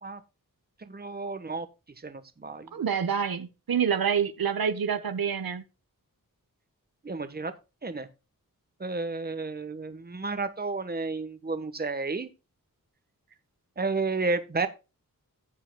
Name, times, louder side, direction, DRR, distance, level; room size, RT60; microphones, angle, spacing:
voice 1, 0.8-1.7 2.0-2.7 7.0-7.5 7.8-8.1 8.8-12.3 13.8-14.7, right 3 dB, 25° right, 10 dB, 1.1 m, -31 dB
voice 2, 2.7-5.6, right 7 dB, 85° right, 10 dB, 1.1 m, -27 dB
14.5 x 8.4 x 2.2 m, 0.29 s
wide cardioid pair, 80°, 35 cm